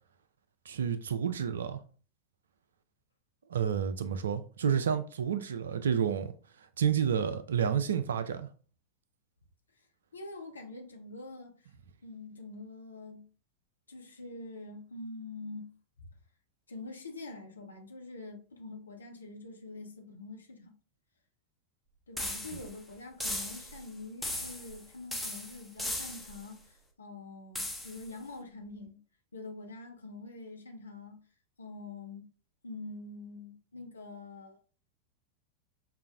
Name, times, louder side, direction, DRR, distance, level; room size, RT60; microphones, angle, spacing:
voice 1, 0.7-1.8 3.5-6.3 6.8-8.5, right 8 dB, 65° right, 0.4 m, -30 dB
voice 2, 10.1-11.7 12.0-13.3 13.9-15.8 16.7-20.7 22.1-29.0 29.3-31.2 31.6-32.3 32.6-34.6, left 3 dB, 75° left, 0.7 m, -45 dB
sound 1, 22.2-22.8 23.2-23.8 24.2-24.8 25.1-26.4 27.5-28.1, left 1 dB, ahead, 0.7 m, -37 dB
5.5 x 2.0 x 2.4 m
figure-of-eight pair, 90°, 0 cm